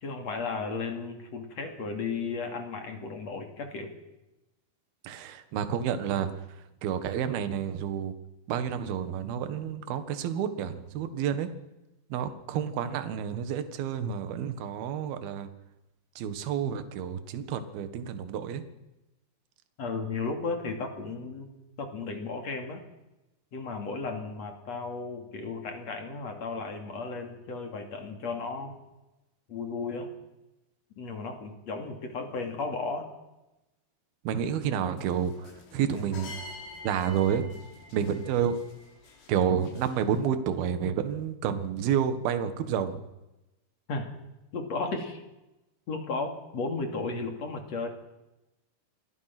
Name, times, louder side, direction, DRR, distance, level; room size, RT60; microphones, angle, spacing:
voice 1, 0.0-3.9 19.8-21.5 21.8-22.8 23.5-28.7 29.5-30.1 31.0-33.1 43.9-44.1 44.5-45.2 45.9-47.9, left 4 dB, 40° left, 4 dB, 3.2 m, -34 dB
voice 2, 5.0-6.3 6.8-8.1 8.5-11.5 12.1-15.5 16.2-18.6 34.2-36.3 36.8-37.5 37.9-38.6 39.3-43.0, right 8 dB, 60° right, 10 dB, 3.2 m, -29 dB
sound 1, 35.0-40.2, left 3 dB, 90° left, 6.1 m, -47 dB
27.5 x 22.0 x 6.1 m, 0.98 s
omnidirectional pair, 5.4 m